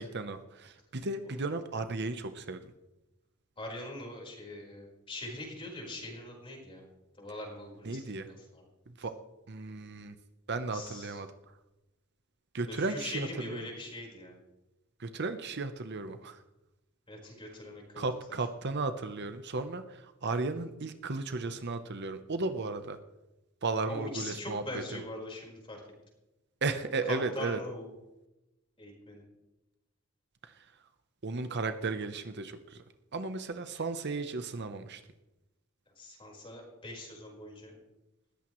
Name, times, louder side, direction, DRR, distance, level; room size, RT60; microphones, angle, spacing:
voice 1, 0.0-2.7 7.8-8.3 8.9-9.1 9.5-10.1 10.5-11.5 12.5-13.6 15.0-16.4 18.0-23.0 23.6-25.0 26.6-27.6 30.4-30.8 31.2-32.8 33.1-35.0, right 3 dB, 55° right, 9 dB, 0.9 m, -35 dB
voice 2, 3.6-6.9 7.2-8.6 10.7-11.2 12.7-14.4 17.1-18.1 23.8-25.8 27.0-27.9 28.8-29.2 36.0-37.8, left 1 dB, 25° left, -1 dB, 4.6 m, -42 dB
20.0 x 15.0 x 3.1 m, 0.98 s
head